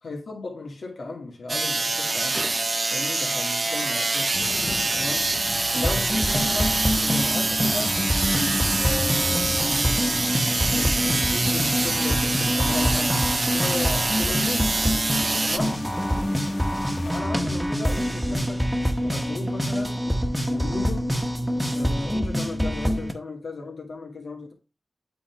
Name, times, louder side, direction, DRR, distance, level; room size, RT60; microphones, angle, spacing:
voice 1, 0.0-2.5 2.9-4.4 4.9-5.3 5.7-7.9 8.3-10.2 10.8-14.8 15.4-15.8 17.0-18.7 19.0-20.0 20.5-21.1 21.7-24.5, left 3 dB, 80° left, 2.3 m, -35 dB
sound 1, 1.5-15.6, right 3 dB, 45° right, 0.6 m, -25 dB
sound 2, 4.3-17.2, left 3 dB, 65° left, 0.6 m, -38 dB
sound 3, 5.7-23.1, equal, 5° right, 1.3 m, -26 dB
8.7 x 3.7 x 4.5 m
cardioid pair, 55°, 0 cm